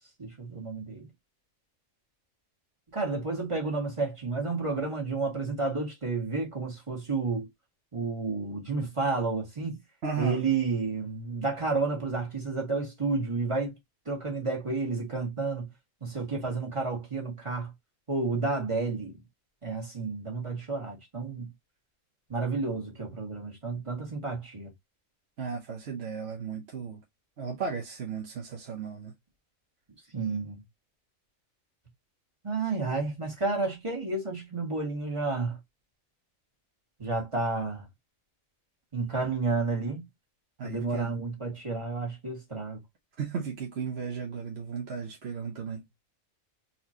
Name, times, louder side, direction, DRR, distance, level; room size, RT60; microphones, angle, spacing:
voice 1, 0.2-1.1 2.9-7.5 7.9-9.8 10.2-13.7 14.1-15.7 16.0-17.7 18.1-19.2 19.6-21.5 22.3-24.7 30.1-30.6 32.4-35.6 37.0-37.9 38.9-40.1 40.6-42.8, right 3 dB, 25° right, 1.7 m, -31 dB
voice 2, 10.0-10.4 25.4-27.0 27.4-29.1 40.6-41.1 43.2-45.8, right 6 dB, 55° right, 1.0 m, -35 dB
4.2 x 3.0 x 2.7 m
omnidirectional pair, 1.4 m